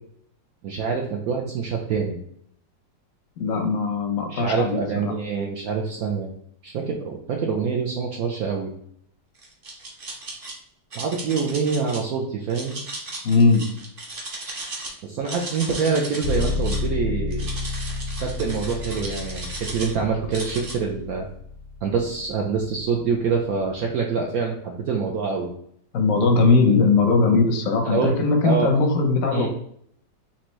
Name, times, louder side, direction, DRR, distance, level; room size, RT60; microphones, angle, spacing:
voice 1, 0.6-2.2 4.3-6.3 6.6-8.7 10.9-12.8 15.0-17.5 18.2-21.3 21.8-25.5 27.9-28.1 28.4-28.8 29.3-29.5, right 5 dB, 75° right, 0 dB, 0.8 m, -25 dB
voice 2, 3.4-5.1 13.2-13.7 25.9-29.5, left 3 dB, 65° left, 4 dB, 0.8 m, -19 dB
sound 1, 9.4-10.5 10.9-12.0 12.5-14.9 15.2-16.9 17.3-19.9 20.3-20.8, right 2 dB, 40° right, 0.8 m, -36 dB
sound 2, 16.2-24.0, left 3 dB, 90° left, 1.3 m, -31 dB
4.3 x 2.9 x 3.0 m, 0.69 s
omnidirectional pair, 2.0 m